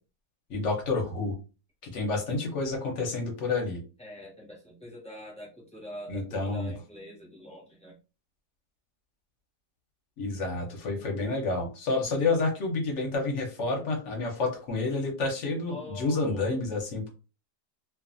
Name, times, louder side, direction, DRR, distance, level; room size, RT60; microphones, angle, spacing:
voice 1, 0.5-1.3 1.8-3.8 6.1-6.7 10.2-17.1, left 3 dB, 55° left, 1 dB, 1.0 m, -29 dB
voice 2, 4.0-8.0 15.7-16.5, left 1 dB, 5° left, -3 dB, 0.9 m, -44 dB
2.5 x 2.5 x 2.5 m, 0.33 s
omnidirectional pair, 1.8 m